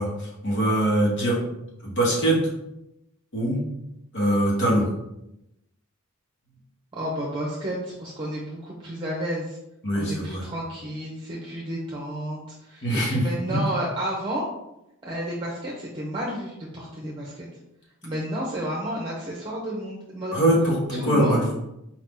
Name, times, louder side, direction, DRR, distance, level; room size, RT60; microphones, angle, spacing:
voice 1, 0.0-1.4 1.8-2.4 3.3-3.6 4.1-4.9 9.8-10.5 12.8-13.6 20.3-21.5, right 1 dB, 60° left, -4 dB, 1.5 m, -23 dB
voice 2, 6.9-9.6 9.9-14.5 15.0-17.5 18.0-20.4 20.9-21.4, equal, 25° right, -4 dB, 0.7 m, -31 dB
4.7 x 2.8 x 3.7 m, 0.86 s
head